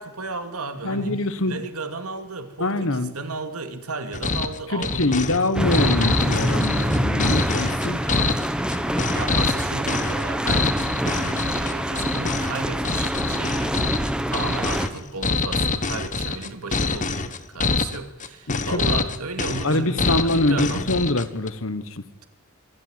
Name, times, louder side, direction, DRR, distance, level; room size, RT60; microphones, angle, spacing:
voice 1, 0.0-1.2 1.5-6.4 9.1-13.7 14.3-20.9, right 3 dB, 85° right, 8 dB, 2.5 m, -34 dB
voice 2, 0.8-1.6 2.6-3.1 4.7-8.0 18.5-18.8 19.6-22.0, left 2 dB, 60° left, 13 dB, 1.4 m, -24 dB
sound 1, 4.1-21.5, left 4 dB, 35° left, 1.1 m, -26 dB
sound 2, 5.5-14.9, equal, 5° right, 1.1 m, -25 dB
25.0 x 14.0 x 9.6 m, 1.0 s
head